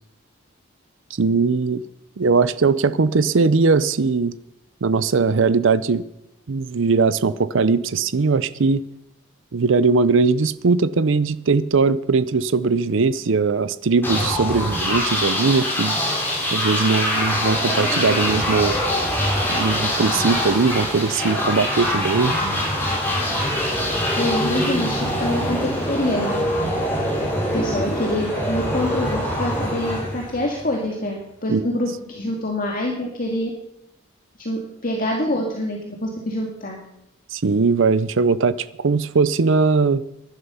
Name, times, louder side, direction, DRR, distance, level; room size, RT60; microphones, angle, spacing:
voice 1, 1.2-1.8 2.2-4.3 4.8-6.0 6.5-8.8 9.5-16.0 16.5-18.8 19.5-22.3 31.5-31.7 37.3-40.0, right 4 dB, 60° right, 0.6 m, -20 dB
sound 1, 14.0-30.8, left 1 dB, 10° left, 5.2 m, -23 dB
voice 2, 24.2-26.7 27.5-33.5 34.4-36.8, left 1 dB, 40° left, 2.2 m, -26 dB
17.0 x 11.5 x 5.6 m
head